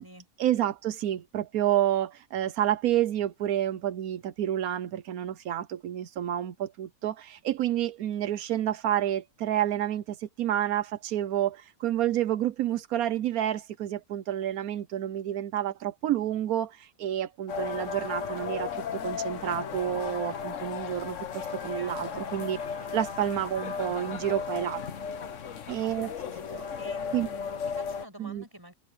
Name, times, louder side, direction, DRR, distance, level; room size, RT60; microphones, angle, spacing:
voice 1, 0.4-22.6 22.9-24.8 25.7-26.1 27.1-27.3 28.2-28.4, right 11 dB, 85° right, 1.2 m, -29 dB
sound 1, 17.5-28.1, left 6 dB, 60° left, 1.3 m, -35 dB
voice 2, 21.8-22.3 25.5-28.7, equal, 15° right, 6.6 m, -48 dB
omnidirectional pair, 1.5 m